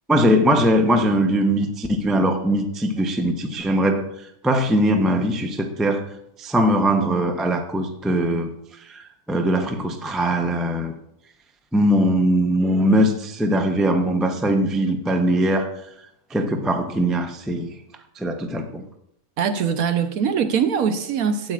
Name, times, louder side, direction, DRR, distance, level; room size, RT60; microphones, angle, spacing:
voice 1, 0.1-4.1 4.4-6.0 6.4-8.5 8.9-10.9 11.7-15.7 16.3-17.7 18.2-18.8, equal, ahead, 4 dB, 0.3 m, -21 dB
voice 2, 19.4-21.5, right 7 dB, 70° right, 8 dB, 1.1 m, -22 dB
13.0 x 8.6 x 2.4 m, 0.76 s
omnidirectional pair, 1.6 m